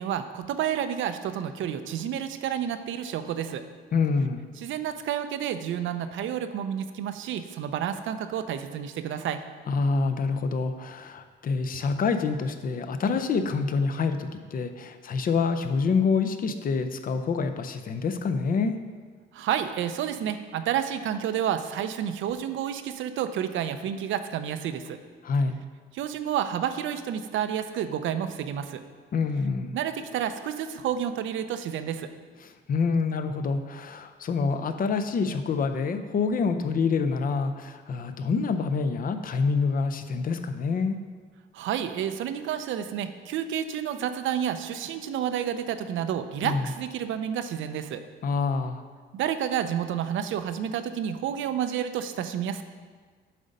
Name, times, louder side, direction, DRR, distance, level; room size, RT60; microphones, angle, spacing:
voice 1, 0.0-3.6 4.6-9.4 19.3-25.0 25.9-28.8 29.7-32.1 41.5-48.0 49.1-52.6, right 9 dB, 75° right, 10 dB, 0.5 m, -30 dB
voice 2, 3.9-4.5 9.7-18.7 25.2-25.6 29.1-29.7 32.4-41.0 46.4-46.7 48.2-48.8, left 4 dB, 45° left, 8 dB, 0.6 m, -27 dB
7.5 x 4.0 x 5.2 m, 1.5 s
cardioid pair, 90°, 20 cm